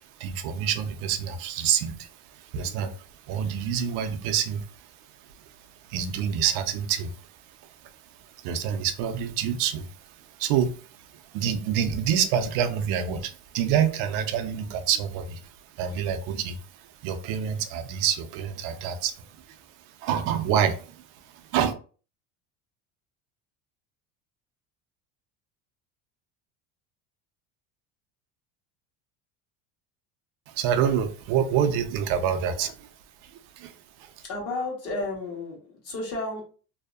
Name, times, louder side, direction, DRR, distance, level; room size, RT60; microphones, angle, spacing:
voice 1, 0.2-4.9 5.9-7.3 8.4-19.6 19.9-21.0 21.5-21.7 30.5-32.9 33.2-33.7 34.0-34.1, right 8 dB, 65° right, 8 dB, 0.5 m, -27 dB
voice 2, 34.3-36.4, left 2 dB, 40° left, -1 dB, 1.1 m, -32 dB
2.7 x 2.0 x 2.3 m, 0.38 s
cardioid pair, 145°, 36 cm